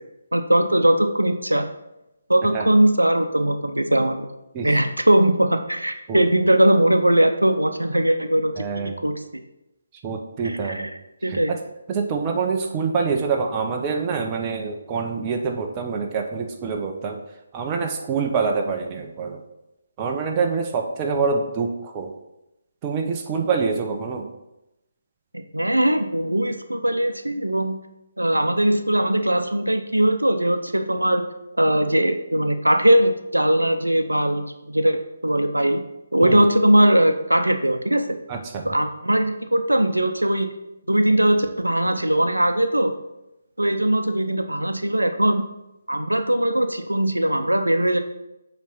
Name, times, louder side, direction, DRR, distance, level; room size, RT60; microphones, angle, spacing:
voice 1, 0.3-1.7 2.3-4.3 4.6-9.2 10.4-10.8 11.2-11.5 25.3-27.8 28.2-31.2 31.6-35.8 36.1-38.1 38.6-40.5 40.9-42.9 43.6-45.5 45.9-48.0, right 1 dB, 85° right, 7 dB, 0.7 m, -20 dB
voice 2, 8.6-8.9 10.0-10.9 11.3-11.6 11.9-17.2 17.5-19.4 20.0-22.1 22.8-24.3 36.2-36.4 38.3-38.8, right 5 dB, 20° right, 2 dB, 0.8 m, -26 dB
7.2 x 3.3 x 5.6 m, 0.90 s
figure-of-eight pair, 145°, 0 cm